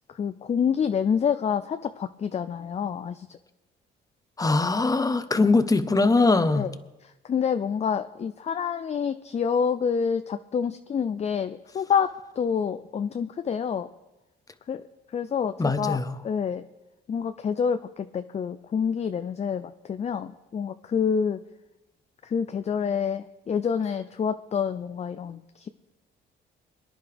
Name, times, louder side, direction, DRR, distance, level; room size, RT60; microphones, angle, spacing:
voice 1, 0.1-3.4 5.4-5.5 6.5-6.7 7.2-13.9 14.7-14.8 15.1-16.0 16.2-16.6 17.1-21.4 22.2-25.7, left 7 dB, 35° left, 10 dB, 0.5 m, -27 dB
voice 2, 4.4-6.7 15.6-16.2, left 3 dB, 20° left, 12 dB, 0.9 m, -22 dB
23.0 x 10.5 x 3.5 m, 1.0 s
cardioid pair, 90°, 20 cm